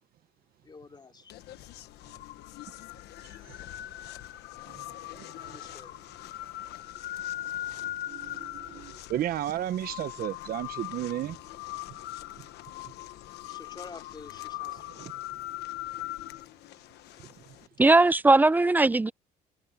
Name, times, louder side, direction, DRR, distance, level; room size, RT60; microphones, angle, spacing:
voice 1, 0.6-1.4 5.3-6.0 13.4-14.9, left 4 dB, 25° left, 3.6 m, -48 dB
sound 1, 1.3-17.7, left 15 dB, 80° left, 1.2 m, -41 dB
voice 2, 8.1-11.4 15.0-15.1, right 12 dB, 60° right, 1.0 m, -33 dB
voice 3, 17.8-19.1, right 2 dB, 10° right, 0.4 m, -19 dB
cardioid pair, 110°, 17 cm